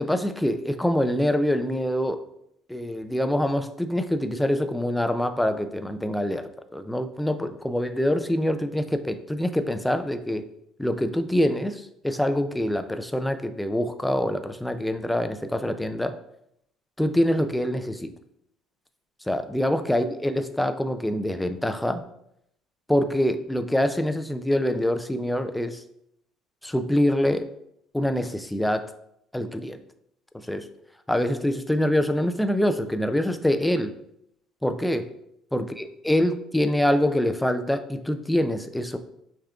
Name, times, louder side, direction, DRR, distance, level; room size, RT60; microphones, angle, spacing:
voice 1, 0.0-2.2 2.7-10.4 10.8-16.2 17.0-18.1 19.3-22.0 22.9-25.8 26.6-27.5 27.9-28.9 29.3-29.8 30.5-30.7 31.1-33.9 34.6-35.1 35.5-35.6 36.1-39.0, left 1 dB, 5° left, 8 dB, 0.3 m, -25 dB
6.2 x 3.6 x 2.3 m, 0.76 s
cardioid pair, 140°, 0 cm